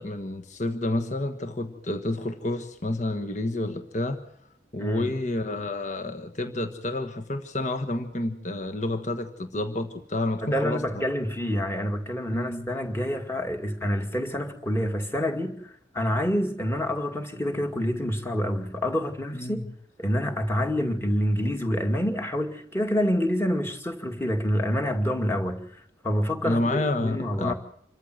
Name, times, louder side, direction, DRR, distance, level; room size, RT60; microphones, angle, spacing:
voice 1, 0.0-4.2 4.7-11.0 12.3-12.7 19.3-19.6 26.4-27.5, left 2 dB, 40° left, 1.4 m, -29 dB
voice 2, 4.8-5.1 10.4-19.6 20.0-27.5, equal, 15° left, 2.2 m, -27 dB
27.0 x 14.0 x 7.9 m
head